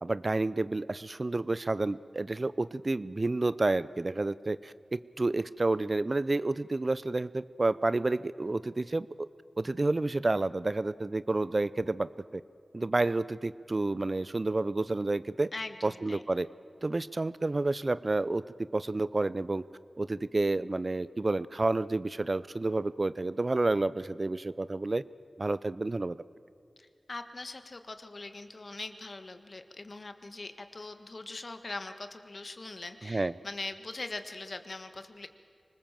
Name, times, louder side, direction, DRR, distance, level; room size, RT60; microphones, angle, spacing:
voice 1, 0.0-9.3 9.6-12.4 12.7-15.5 15.8-16.5 16.8-18.4 18.7-19.6 20.0-25.0 25.4-26.2 33.0-33.3, right 2 dB, 45° right, 17 dB, 0.5 m, -30 dB
voice 2, 15.5-16.2 26.8-35.3, left 2 dB, 55° left, 8 dB, 1.5 m, -42 dB
25.5 x 20.0 x 7.6 m, 2.5 s
wide cardioid pair, 55°, 0 cm